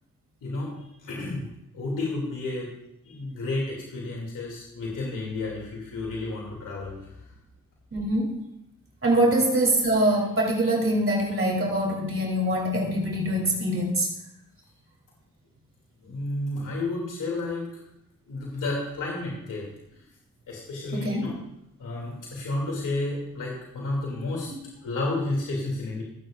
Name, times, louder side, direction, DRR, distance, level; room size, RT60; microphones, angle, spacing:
voice 1, 0.4-2.8 3.0-7.1 16.0-17.6 18.3-19.6 20.5-21.3 21.8-24.5 24.8-26.0, left 2 dB, 90° left, -3 dB, 2.9 m, -31 dB
voice 2, 7.9-8.4 9.0-14.1 20.9-21.3 24.5-24.6, right 1 dB, 45° right, -2 dB, 3.6 m, -24 dB
25.5 x 9.0 x 2.6 m, 0.82 s
cardioid pair, 60°, 30 cm